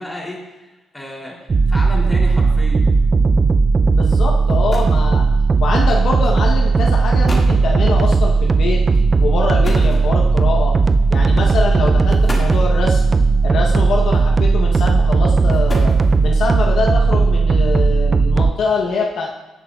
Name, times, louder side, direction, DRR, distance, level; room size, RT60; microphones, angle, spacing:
voice 1, 0.0-2.9, left 1 dB, 10° left, -2 dB, 2.9 m, -32 dB
sound 1, 1.5-18.5, right 4 dB, 35° right, 0.4 m, -15 dB
voice 2, 4.0-5.3 5.6-8.8 9.2-10.7 11.1-13.0 13.4-15.9 16.2-19.3, left 4 dB, 65° left, 0 dB, 0.9 m, -23 dB
sound 2, 4.1-4.2 4.5-5.1 6.1-6.3 6.9-7.0 7.3-7.6 9.6-10.5 11.4-11.6 12.1-12.8 14.0-14.5 15.3-16.4, left 1 dB, 30° left, 2.0 m, -32 dB
16.5 x 5.9 x 2.4 m, 1.1 s
cardioid pair, 90°, 0 cm